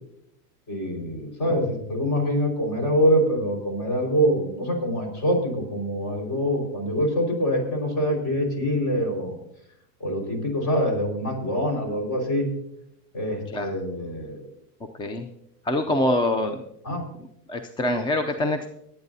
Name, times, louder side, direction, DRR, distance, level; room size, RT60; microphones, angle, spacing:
voice 1, 0.7-9.4 10.0-12.5 13.1-14.5 16.8-17.0, equal, 40° left, 3 dB, 5.0 m, -25 dB
voice 2, 15.0-15.3 15.6-16.6 17.5-18.7, left 1 dB, 10° left, 8 dB, 0.4 m, -24 dB
24.5 x 9.1 x 2.7 m, 0.75 s
supercardioid pair, 115°, 48 cm